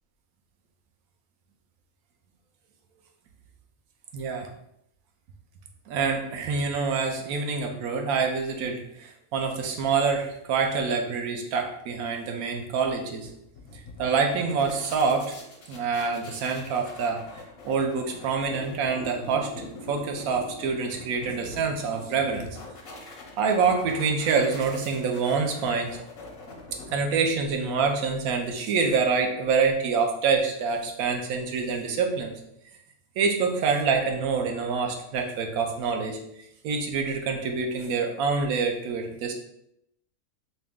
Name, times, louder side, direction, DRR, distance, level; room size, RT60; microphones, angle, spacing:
voice 1, 4.1-4.5 5.9-13.3 13.7-15.3 15.7-17.3 17.6-19.5 19.9-22.5 23.4-26.0 26.9-32.3 33.2-36.2 36.6-39.3, right 5 dB, 75° right, 4 dB, 1.0 m, -26 dB
sound 1, 13.2-27.6, left 2 dB, 60° left, 0.6 m, -44 dB
2.9 x 2.7 x 3.5 m, 0.78 s
omnidirectional pair, 1.6 m